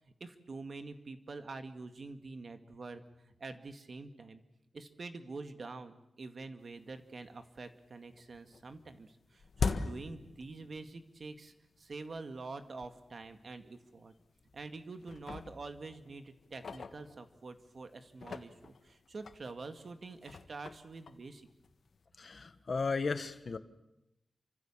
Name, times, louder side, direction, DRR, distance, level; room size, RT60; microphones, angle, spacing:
voice 1, 0.2-4.4 4.7-14.1 14.5-21.5, right 3 dB, 55° right, 8 dB, 2.1 m, -46 dB
sound 1, 6.8-6.9 7.3-7.9 8.1-11.0 11.3-11.5 12.2-12.3 12.8-12.9 13.2-13.4 14.1-14.6 15.0-17.6 18.1-22.0, left 5 dB, 75° left, 1.5 m, -42 dB
voice 2, 22.2-23.6, left 4 dB, 50° left, 11 dB, 1.6 m, -35 dB
28.5 x 25.0 x 7.4 m, 0.87 s
wide cardioid pair, 100°, 0 cm